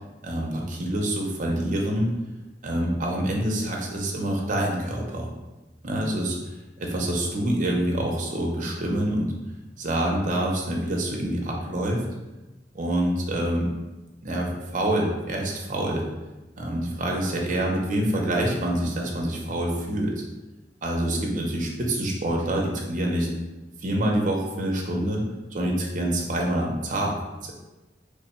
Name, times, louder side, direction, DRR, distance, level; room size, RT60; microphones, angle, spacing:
voice 1, 0.2-2.1 2.6-5.3 5.8-9.3 9.8-12.0 12.7-13.7 14.2-16.0 16.6-20.2 20.8-23.3 23.8-25.2 25.5-27.1, right 1 dB, 45° right, -1 dB, 0.6 m, -26 dB
3.1 x 2.2 x 4.1 m, 1.1 s
head